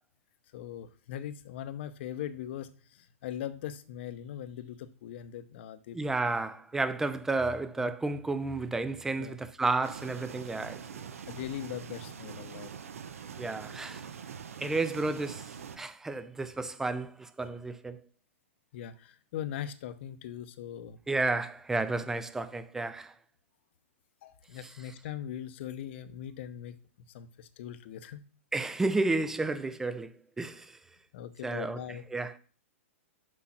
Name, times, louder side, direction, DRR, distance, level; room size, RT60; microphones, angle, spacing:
voice 1, 0.5-6.0 7.8-7.9 9.2-9.4 11.3-12.7 18.7-21.0 24.2-26.8 27.1-28.2 31.1-32.0, left 10 dB, 55° left, 0.8 m, -40 dB
voice 2, 5.9-11.0 13.4-14.1 14.6-18.0 21.1-23.1 28.5-30.8 31.4-32.4, right 3 dB, 5° right, 0.4 m, -32 dB
sound 1, 9.8-15.8, right 7 dB, 85° right, 0.8 m, -44 dB
6.3 x 5.5 x 5.8 m
hypercardioid pair, 150°, 7 cm